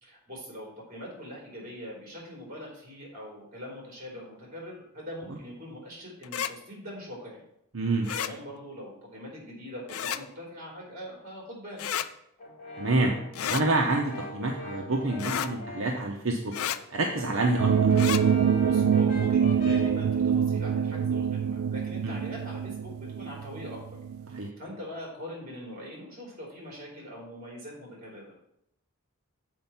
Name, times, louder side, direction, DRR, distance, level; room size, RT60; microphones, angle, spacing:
voice 1, 0.0-7.4 8.1-11.8 18.6-24.0 24.6-28.2, equal, 40° right, -2 dB, 3.3 m, -42 dB
sound 1, 6.2-6.5 8.0-8.3 9.9-10.2 11.8-12.1 13.3-13.6 15.2-15.5 16.5-16.8 17.9-18.2, left 9 dB, 90° left, 0.4 m, -31 dB
voice 2, 7.7-8.1 12.8-13.2 13.5-16.5 16.9-17.9 22.0-22.2 24.3-24.5, right 2 dB, 70° right, 0 dB, 0.8 m, -27 dB
Brass instrument, 12.4-16.0 16.4-20.0, left 2 dB, 40° left, 2.8 m, -42 dB
sound 2, 17.6-24.4, right 7 dB, 90° right, 0.3 m, -25 dB
7.6 x 4.3 x 5.6 m, 0.77 s
head